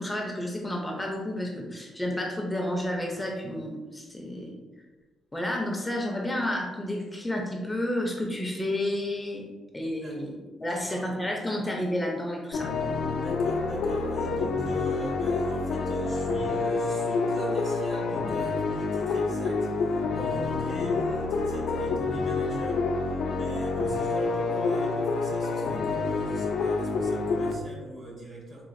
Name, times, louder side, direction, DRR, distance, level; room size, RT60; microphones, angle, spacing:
voice 1, 0.0-4.5 5.3-9.4 9.7-10.3 10.6-12.7, left 1 dB, 10° left, 0 dB, 0.5 m, -31 dB
voice 2, 10.6-11.1 13.2-28.6, right 1 dB, 50° right, -3 dB, 1.3 m, -41 dB
sound 1, 12.5-27.5, left 3 dB, 70° left, 0.4 m, -28 dB
3.9 x 2.4 x 2.5 m, 1.2 s
cardioid pair, 90°, 0 cm